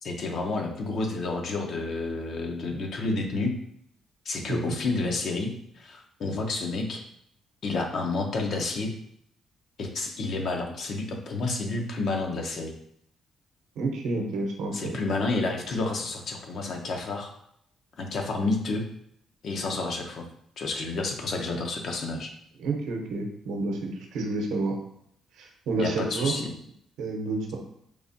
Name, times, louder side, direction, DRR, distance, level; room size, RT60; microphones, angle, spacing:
voice 1, 0.0-3.6 4.3-7.0 7.6-8.9 9.8-12.7 14.7-17.3 18.0-18.8 19.4-20.2 20.6-22.3 25.8-26.5, left 3 dB, 60° left, 3 dB, 0.7 m, -30 dB
voice 2, 13.8-15.0 22.6-24.8 25.4-26.3 27.0-27.6, right 3 dB, 85° right, 2 dB, 0.7 m, -29 dB
4.7 x 2.4 x 2.6 m, 0.72 s
cardioid pair, 90°, 0 cm